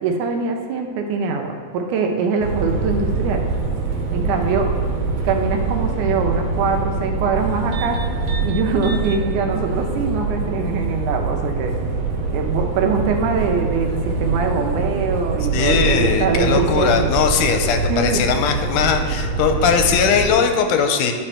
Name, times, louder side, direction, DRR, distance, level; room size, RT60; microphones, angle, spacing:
voice 1, 0.0-3.5 4.1-4.7 5.2-8.0 8.4-11.7 12.3-17.1 17.9-18.3, right 5 dB, 85° right, 3 dB, 2.3 m, -23 dB
sound 1, 2.4-20.3, right 3 dB, 70° right, 2.2 m, -24 dB
voice 2, 15.5-21.1, left 6 dB, 85° left, 6 dB, 2.1 m, -19 dB
11.0 x 4.4 x 4.3 m, 2.1 s
omnidirectional pair, 3.5 m